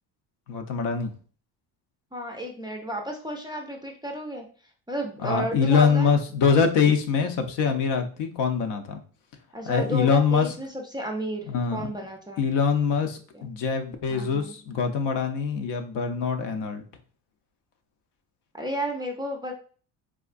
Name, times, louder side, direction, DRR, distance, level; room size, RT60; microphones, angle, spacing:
voice 1, 0.5-1.1 5.2-9.0 9.7-10.5 11.5-11.9 12.4-16.8, left 6 dB, 70° left, 6 dB, 0.7 m, -24 dB
voice 2, 2.1-4.5 4.9-6.2 9.5-12.4 13.3-13.5 14.1-14.5 18.5-19.5, equal, 10° right, 1 dB, 0.3 m, -32 dB
3.6 x 2.2 x 2.4 m, 0.41 s
cardioid pair, 100°, 43 cm